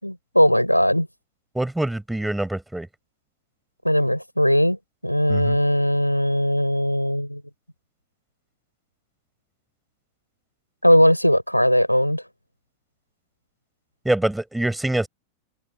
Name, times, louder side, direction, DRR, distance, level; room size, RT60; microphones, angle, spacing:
voice 1, 0.0-1.1 3.8-4.8 5.0-7.4 10.8-12.2, equal, 90° left, 5.9 m, -19 dB
voice 2, 1.5-2.9 5.3-5.6 14.0-15.1, right 1 dB, 5° right, 7.0 m, -25 dB
open air
figure-of-eight pair, 90°, 0 cm